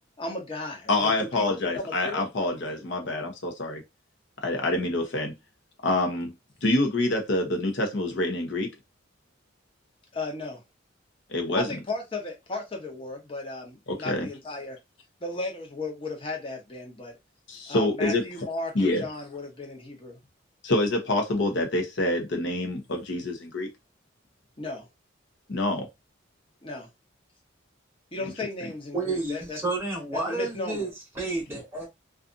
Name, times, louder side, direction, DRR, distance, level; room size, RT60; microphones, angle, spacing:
voice 1, 0.2-2.2 10.1-10.6 11.6-14.8 15.2-17.1 17.7-20.2 24.6-24.9 26.6-26.9 28.1-29.6 30.3-30.9 31.5-31.6, left 2 dB, 25° left, 0.8 m, -35 dB
voice 2, 0.9-3.8 4.4-5.3 5.8-6.3 6.6-8.7 11.3-11.7 13.9-14.3 17.5-18.2 18.7-19.1 20.6-23.7 25.5-25.9, left 2 dB, 65° left, 0.8 m, -26 dB
voice 3, 28.9-30.9 31.1-31.9, right 3 dB, 10° right, 0.9 m, -30 dB
2.6 x 2.4 x 2.5 m
head